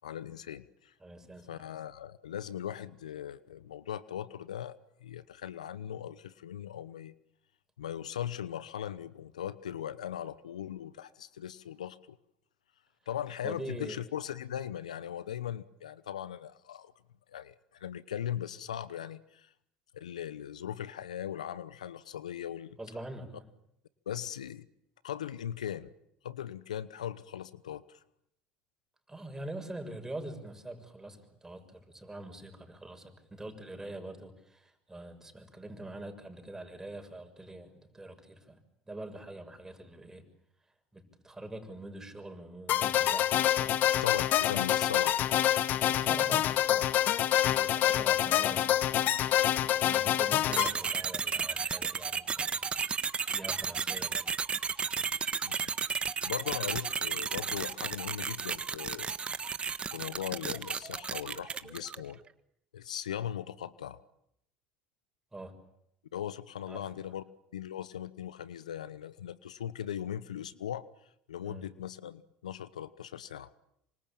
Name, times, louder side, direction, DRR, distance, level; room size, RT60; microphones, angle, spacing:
voice 1, 0.0-0.9 1.5-7.1 7.8-12.2 13.1-16.9 17.3-19.5 19.9-22.8 24.1-24.7 25.0-25.9 26.2-28.0 44.0-45.1 45.9-46.1 47.5-47.7 55.5-55.7 56.3-59.1 59.9-62.2 62.7-64.0 66.1-67.2 67.5-70.8 71.3-73.5, left 10 dB, 90° left, 17 dB, 1.0 m, -39 dB
voice 2, 1.0-1.7 13.4-14.0 22.8-23.4 29.1-38.6 38.9-40.2 40.9-43.8 44.5-44.6 46.0-46.9 47.6-48.8 49.8-52.6 53.3-54.3 54.9-55.1 65.3-65.6 66.7-67.1 71.4-71.7, right 1 dB, 15° right, 6 dB, 6.7 m, -44 dB
sound 1, 42.7-50.7, left 12 dB, 55° left, 1.3 m, -26 dB
sound 2, 50.5-62.1, right 6 dB, 30° right, 1.5 m, -33 dB
26.5 x 25.0 x 8.9 m, 0.79 s
hypercardioid pair, 75°, 4 cm